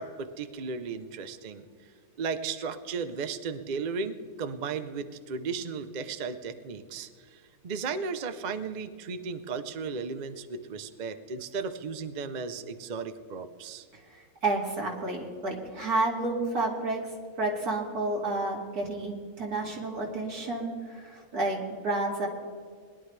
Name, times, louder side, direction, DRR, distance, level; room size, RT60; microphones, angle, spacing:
voice 1, 0.0-1.7 2.2-13.9, right 5 dB, 45° right, 10 dB, 0.6 m, -35 dB
voice 2, 14.4-17.0 17.4-22.3, right 2 dB, 85° right, -1 dB, 2.9 m, -30 dB
21.0 x 11.0 x 3.3 m, 2.1 s
omnidirectional pair, 1.6 m